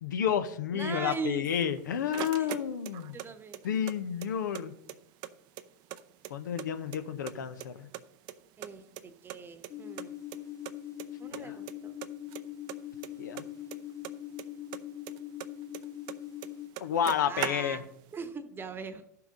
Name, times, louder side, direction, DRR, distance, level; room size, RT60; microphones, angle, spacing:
voice 1, 0.0-3.2 3.6-4.7 6.3-7.9 11.3-11.5 13.2-13.5 16.8-17.8, left 8 dB, 85° left, 10 dB, 0.9 m, -31 dB
voice 2, 0.7-1.5 2.2-2.6 3.1-3.6 8.6-10.1 11.2-11.9 17.3-17.9 18.1-19.0, right 5 dB, 20° right, 10 dB, 1.0 m, -40 dB
sound 1, 1.5-3.3 3.5-4.6 4.9-5.0 5.2-6.7 6.9-7.7 7.9-9.4 9.6-9.7 10.0-10.1 10.3-10.4 10.6-11.1 11.3-11.7 12.0-14.4 14.7-16.2 16.4-16.5 16.7-18.0, right 13 dB, 50° right, 0.6 m, -40 dB
sound 2, 9.7-16.7, left 12 dB, 30° left, 0.6 m, -42 dB
13.5 x 5.9 x 3.8 m, 0.73 s
hypercardioid pair, 100°, 10 cm